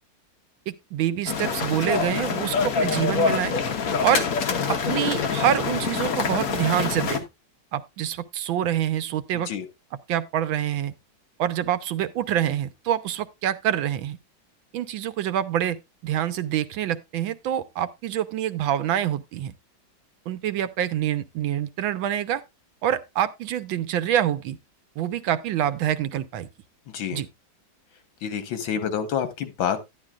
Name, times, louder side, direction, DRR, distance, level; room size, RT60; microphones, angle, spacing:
voice 1, 0.7-3.6 4.0-4.3 4.7-7.2 7.7-9.5 10.1-10.9 11.4-14.2 14.7-19.5 20.3-22.4 22.8-24.6 25.0-26.5 27.1-27.3, right 11 dB, 85° right, 1.5 m, -26 dB
sound 1, 1.3-7.2, left 5 dB, 50° left, 1.5 m, -25 dB
voice 2, 28.2-29.8, left 8 dB, 80° left, 2.0 m, -28 dB
11.5 x 10.5 x 2.3 m
omnidirectional pair, 2.1 m